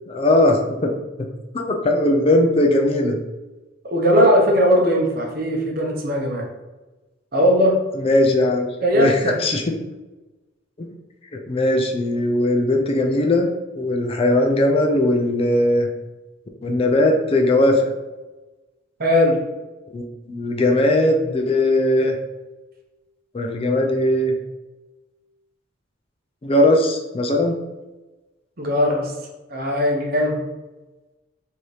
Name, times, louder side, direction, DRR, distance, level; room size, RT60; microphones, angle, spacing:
voice 1, 0.1-0.9 1.5-3.2 8.0-8.7 8.9-9.6 10.8-10.9 11.5-13.5 13.7-15.9 16.6-17.9 19.9-22.2 23.3-24.3 26.4-27.6, left 1 dB, 30° left, 3 dB, 0.4 m, -19 dB
voice 2, 3.9-6.5 7.3-7.8 8.8-9.3 19.0-19.4 28.6-29.1 29.5-30.4, equal, 50° right, 0 dB, 0.8 m, -18 dB
4.7 x 2.7 x 3.1 m, 1.1 s
head